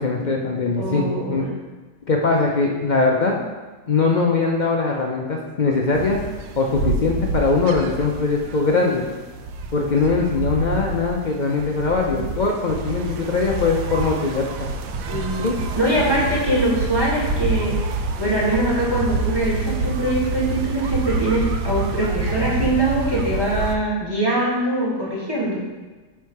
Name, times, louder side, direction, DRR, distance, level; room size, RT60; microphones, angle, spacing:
voice 1, 0.0-1.5 2.1-3.3 3.9-6.2 6.6-9.0 9.7-14.7 15.4-15.6, left 4 dB, 90° left, -1 dB, 0.4 m, -21 dB
voice 2, 0.8-1.5 8.7-8.9 12.1-12.2 15.1-15.4 15.7-17.9 18.2-25.6, right 1 dB, 15° right, -6 dB, 1.8 m, -23 dB
sound 1, 5.9-23.8, right 3 dB, 80° right, 1.2 m, -27 dB
9.1 x 3.6 x 4.8 m, 1.3 s
omnidirectional pair, 1.8 m